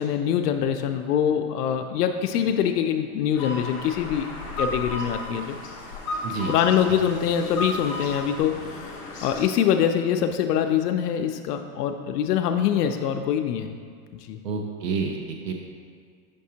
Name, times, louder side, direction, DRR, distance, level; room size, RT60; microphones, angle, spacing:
voice 1, 0.0-4.3 4.6-5.6 6.5-8.9 9.2-13.7 14.2-14.4, left 9 dB, 80° left, 5 dB, 0.5 m, -24 dB
sound 1, 3.3-9.4, left 1 dB, 25° left, 0.7 m, -34 dB
voice 2, 6.2-6.5 14.4-15.5, right 5 dB, 90° right, 2 dB, 0.8 m, -29 dB
6.4 x 5.3 x 2.8 m, 2.1 s
supercardioid pair, 170°, 46 cm